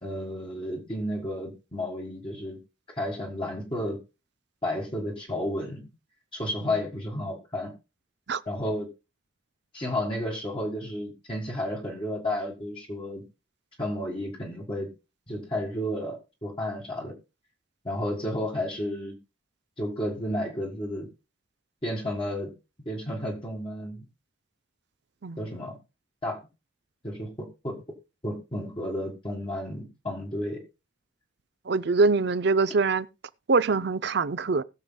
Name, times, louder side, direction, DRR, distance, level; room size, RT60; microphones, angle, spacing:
voice 1, 0.0-2.6 2.9-4.0 4.6-5.8 6.3-7.7 8.5-8.9 9.7-13.2 13.8-14.9 15.3-17.1 17.8-19.2 19.8-21.1 21.8-22.5 22.9-24.1 25.4-25.8 26.2-26.4 27.0-27.8 28.2-30.6, left 1 dB, 25° left, 1.7 m, -32 dB
voice 2, 31.7-33.1 33.5-34.6, right 4 dB, 55° right, 0.5 m, -23 dB
20.5 x 6.8 x 2.2 m
head